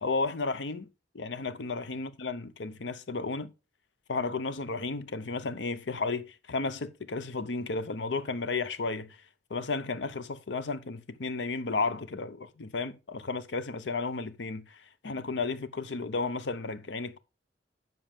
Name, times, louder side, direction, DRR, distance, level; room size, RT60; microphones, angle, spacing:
voice 1, 0.0-0.9 1.1-3.5 4.1-9.2 9.5-17.2, left 3 dB, 75° left, 0.7 m, -33 dB
10.0 x 6.2 x 3.6 m
head